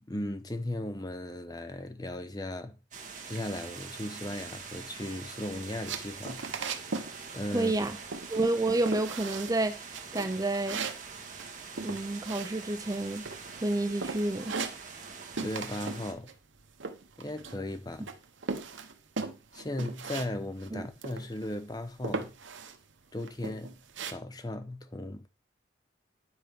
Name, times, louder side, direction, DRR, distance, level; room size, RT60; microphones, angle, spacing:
voice 1, 0.0-2.8 3.2-6.5 7.3-7.7 15.4-16.3 17.2-18.1 19.5-22.3 23.1-23.8 24.1-25.3, left 1 dB, 20° left, 0.8 m, -37 dB
sound 1, 2.9-16.1, right 5 dB, 40° right, 1.7 m, -44 dB
sound 2, 5.8-7.1 7.4-7.8 8.1-8.6 8.9-9.6 9.9-13.0 13.2-13.7 14.0-15.1 15.4-16.0 16.3-17.7 18.1-20.3 20.6-20.7 21.0-21.6 22.0-22.8 23.2-24.1, right 4 dB, 80° right, 1.0 m, -38 dB
voice 2, 7.5-7.9 8.3-9.8 10.1-10.8 11.8-13.3 13.6-14.5 20.7-20.8, right 2 dB, 20° right, 0.5 m, -29 dB
10.0 x 4.6 x 5.2 m
head